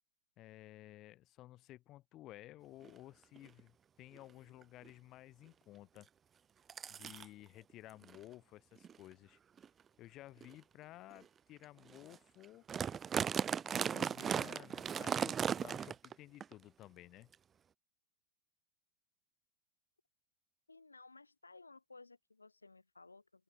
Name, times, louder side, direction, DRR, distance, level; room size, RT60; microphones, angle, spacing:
voice 1, 0.4-6.1 6.9-9.4 10.0-12.7 13.7-17.3, left 15 dB, 35° left, 6.2 m, -55 dB
sound 1, 2.8-2.9 3.4-3.6 4.2-4.3 4.6-4.9 6.0-6.1 6.7-7.3 8.0-8.2 8.8-9.0 9.6-9.7 10.4-10.5 11.1-11.2 11.6-11.7 11.9-12.2 12.4-16.1 16.4-16.5 17.3-17.4, right 7 dB, 20° right, 0.6 m, -37 dB
voice 2, 20.7-23.4, left 3 dB, 80° left, 4.9 m, -58 dB
open air
figure-of-eight pair, 90°, 0 cm